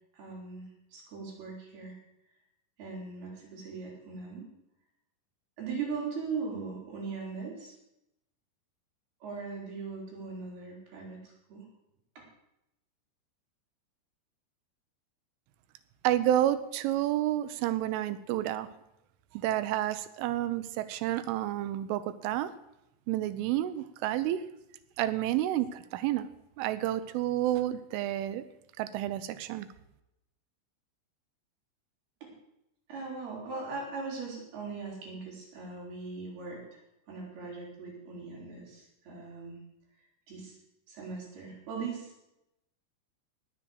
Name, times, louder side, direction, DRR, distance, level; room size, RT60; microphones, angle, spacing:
voice 1, 0.1-2.0 2.8-4.5 5.6-7.8 9.2-11.7 12.2-12.3 32.2-32.3 32.9-36.8 37.1-39.6 40.3-40.6 40.9-42.1, right 4 dB, 55° right, -3 dB, 6.2 m, -39 dB
voice 2, 16.0-18.7 19.3-22.5 23.1-24.4 25.0-26.3 26.6-28.4 28.8-29.7, right 13 dB, 90° right, 13 dB, 3.4 m, -30 dB
19.0 x 7.4 x 7.9 m, 0.86 s
omnidirectional pair, 5.5 m